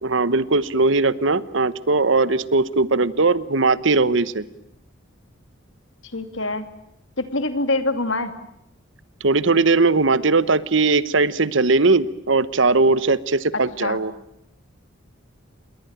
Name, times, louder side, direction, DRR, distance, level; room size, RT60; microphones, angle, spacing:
voice 1, 0.0-4.4 9.2-14.1, right 3 dB, 70° right, 16 dB, 1.1 m, -19 dB
voice 2, 6.1-6.7 7.2-8.3 13.8-14.0, left 2 dB, 70° left, 9 dB, 2.7 m, -24 dB
28.0 x 21.5 x 8.9 m, 0.77 s
head